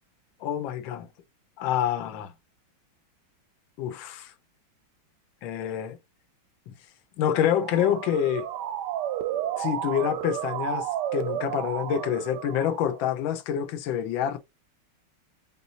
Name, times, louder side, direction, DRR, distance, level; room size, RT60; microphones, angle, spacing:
voice 1, 0.4-1.1 1.6-2.3 3.8-4.3 5.4-6.0 6.7-6.8 7.2-8.5 9.6-14.4, left 9 dB, 75° left, 1.4 m, -27 dB
Motor vehicle (road) / Siren, 7.2-13.1, right 11 dB, 75° right, 1.0 m, -32 dB
5.4 x 2.6 x 2.8 m
omnidirectional pair, 2.2 m